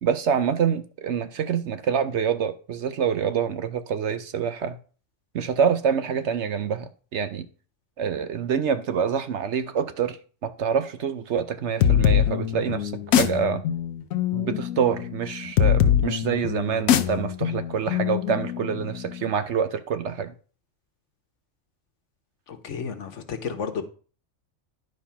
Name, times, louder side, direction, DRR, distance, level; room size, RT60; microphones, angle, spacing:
voice 1, 0.0-4.8 5.3-7.5 8.0-10.2 10.4-13.6 14.3-20.3, right 7 dB, 65° right, 0.9 m, -26 dB
sound 1, 11.8-19.2, left 10 dB, 80° left, 1.1 m, -23 dB
voice 2, 22.5-23.8, left 6 dB, 60° left, 1.3 m, -32 dB
10.5 x 4.2 x 5.7 m
omnidirectional pair, 1.4 m